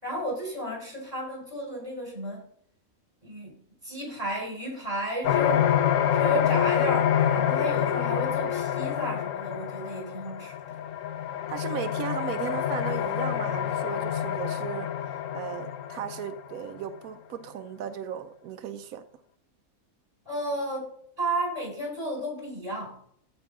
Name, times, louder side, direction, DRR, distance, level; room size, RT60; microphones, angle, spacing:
voice 1, 0.0-2.4 3.2-3.6 3.8-5.7 6.1-10.8 20.2-20.9 21.2-23.0, equal, 30° right, -1 dB, 5.0 m, -32 dB
sound 1, 5.2-16.7, left 10 dB, 70° left, 1.0 m, -27 dB
voice 2, 11.5-14.9 15.3-19.0, right 9 dB, 90° right, 9 dB, 1.1 m, -36 dB
14.0 x 5.5 x 3.7 m, 0.64 s
omnidirectional pair, 1.4 m